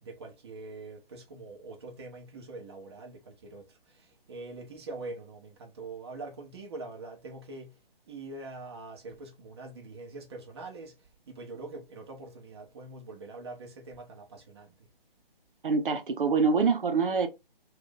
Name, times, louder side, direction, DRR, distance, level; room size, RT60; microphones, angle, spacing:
voice 1, 0.0-7.8 8.1-10.9 11.3-14.7, right 3 dB, 25° right, 0.7 m, -44 dB
voice 2, 15.6-17.3, right 5 dB, 60° right, 0.7 m, -25 dB
2.5 x 2.5 x 3.5 m
figure-of-eight pair, 145°, 30 cm